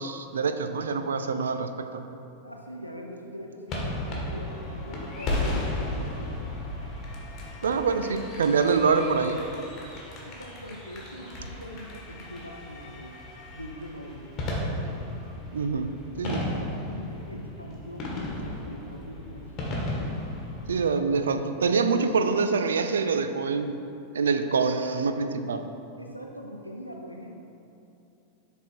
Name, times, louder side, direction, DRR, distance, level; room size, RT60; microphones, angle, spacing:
voice 1, 0.0-2.0 7.6-9.4 15.5-16.5 20.7-23.7 24.1-25.6, right 5 dB, 65° right, 9 dB, 0.4 m, -25 dB
voice 2, 2.4-6.5 7.6-7.8 10.2-13.2 13.6-14.3 14.6-14.9 16.3-19.5 26.0-27.4, equal, 90° left, 1 dB, 0.5 m, -42 dB
sound 1, 3.7-20.8, left 1 dB, 30° left, 1.5 m, -35 dB
7.0 x 4.2 x 4.3 m, 2.7 s
figure-of-eight pair, 90°, 0 cm